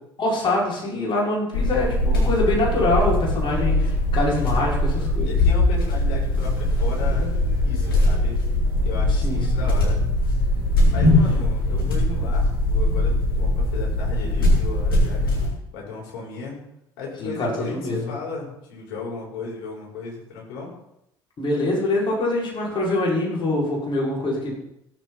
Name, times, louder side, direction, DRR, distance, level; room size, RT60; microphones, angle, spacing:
voice 1, 0.2-5.4 9.1-9.7 17.2-18.1 21.4-24.5, left 2 dB, 45° left, -4 dB, 6.1 m, -24 dB
sound 1, 1.5-15.5, left 1 dB, 90° left, 3.6 m, -21 dB
voice 2, 5.2-7.3 7.6-8.4 8.8-10.0 10.9-15.5 15.7-16.6 17.0-20.7, left 4 dB, 75° left, -2 dB, 5.3 m, -35 dB
17.5 x 8.3 x 4.3 m, 0.79 s
hypercardioid pair, 55°, 12 cm